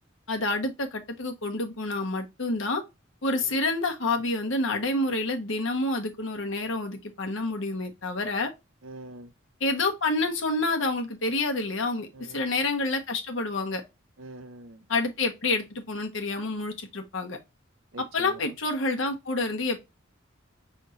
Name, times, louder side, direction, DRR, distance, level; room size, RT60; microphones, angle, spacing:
voice 1, 0.3-2.8 3.2-8.5 9.6-13.8 14.9-17.4 18.0-19.8, left 2 dB, 70° left, 1.1 m, -28 dB
voice 2, 8.8-9.3 12.1-12.4 14.2-14.8 17.9-18.4, right 2 dB, 75° right, 0.7 m, -44 dB
5.7 x 3.5 x 2.5 m
head